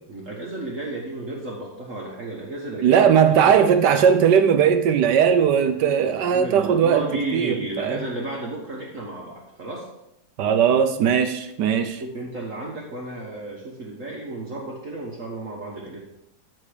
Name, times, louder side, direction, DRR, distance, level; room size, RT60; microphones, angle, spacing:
voice 1, 0.1-3.1 3.4-3.6 6.2-9.9 12.0-16.0, right 2 dB, 50° right, 1.6 m, -33 dB
voice 2, 2.8-7.0 7.3-8.0 10.4-12.0, right 8 dB, 75° right, 1.3 m, -18 dB
13.0 x 4.4 x 5.0 m
omnidirectional pair, 1.9 m